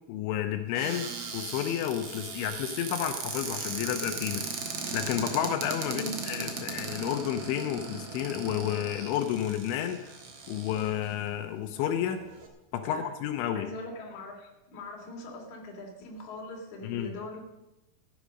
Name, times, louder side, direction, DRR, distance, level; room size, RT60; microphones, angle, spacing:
voice 1, 0.1-1.1 1.3-4.4 4.9-10.2 10.5-12.2 12.7-13.7 16.8-17.1, left 10 dB, 85° left, 6 dB, 3.3 m, -31 dB
Cupboard open or close, 0.7-11.1 11.8-11.9 12.1-12.5, right 5 dB, 55° right, 1.8 m, -38 dB
voice 2, 5.9-6.2 12.8-13.0 13.6-17.4, left 2 dB, 45° left, 0 dB, 3.6 m, -41 dB
15.0 x 9.6 x 6.4 m, 0.96 s
omnidirectional pair, 5.3 m